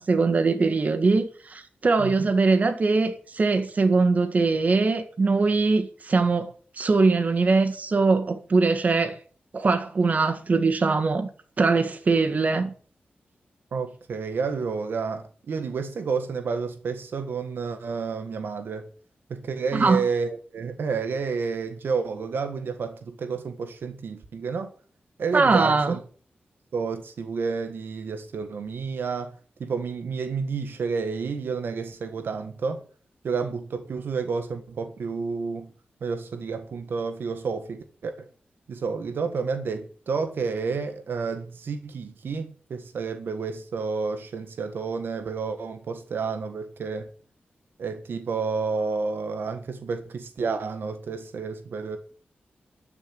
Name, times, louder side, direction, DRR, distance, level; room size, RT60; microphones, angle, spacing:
voice 1, 0.0-6.5 6.8-9.2 9.5-11.3 11.6-12.7 19.7-20.0 25.3-26.0, right 3 dB, 45° right, 1.9 m, -22 dB
voice 2, 13.7-18.9 19.3-24.7 25.2-26.0 26.7-29.3 29.6-32.8 33.2-35.7 36.0-38.3 38.7-47.1 47.8-52.0, right 5 dB, 85° right, 1.6 m, -30 dB
13.5 x 6.9 x 8.8 m
wide cardioid pair, 115°, 4 cm